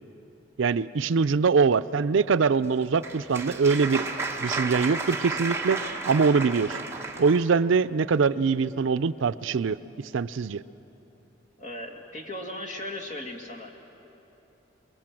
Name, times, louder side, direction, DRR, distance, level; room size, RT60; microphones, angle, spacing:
voice 1, 0.6-4.0 4.4-5.8 6.1-6.8 7.2-9.8 10.1-10.6, right 5 dB, 75° right, 13 dB, 0.4 m, -23 dB
Applause, 2.6-7.5, right 3 dB, 15° right, 1.3 m, -32 dB
voice 2, 11.6-13.7, left 1 dB, 35° left, 0 dB, 2.3 m, -37 dB
28.5 x 21.5 x 7.7 m, 3.0 s
head